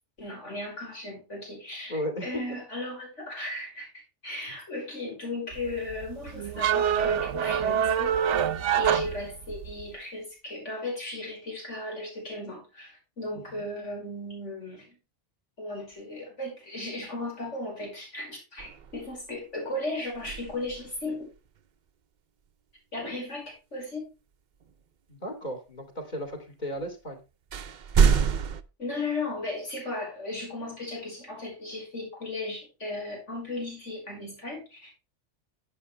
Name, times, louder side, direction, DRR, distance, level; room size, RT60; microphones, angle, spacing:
voice 1, 0.2-14.9 15.6-21.3 22.9-24.0 28.8-34.9, left 2 dB, 85° left, -2 dB, 5.9 m, -36 dB
voice 2, 1.9-2.4 13.3-13.7 25.1-27.2, equal, 40° left, 2 dB, 2.8 m, -35 dB
sound 1, 5.5-9.9, right 9 dB, 85° right, 1.0 m, -26 dB
sound 2, 18.6-19.4 20.1-21.1 24.6-24.7 26.8-26.9 27.5-28.6, right 6 dB, 50° right, 0.6 m, -26 dB
11.0 x 8.9 x 3.3 m, 0.30 s
omnidirectional pair, 1.2 m